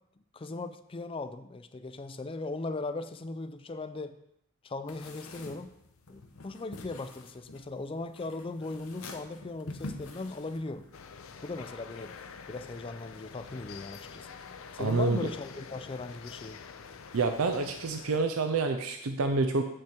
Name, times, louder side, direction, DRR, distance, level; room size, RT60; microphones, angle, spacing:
voice 1, 0.3-4.2 4.6-5.8 6.1-10.9 11.4-12.1 12.5-14.3 14.7-16.6, left 3 dB, 25° left, 11 dB, 0.4 m, -38 dB
sound 1, 4.9-11.0, left 2 dB, 85° left, 0.9 m, -46 dB
sound 2, 10.9-18.2, left 5 dB, 70° left, 0.5 m, -47 dB
voice 2, 14.8-15.2 17.1-19.6, right 3 dB, 80° right, 7 dB, 0.6 m, -28 dB
7.8 x 6.1 x 4.4 m, 0.79 s
head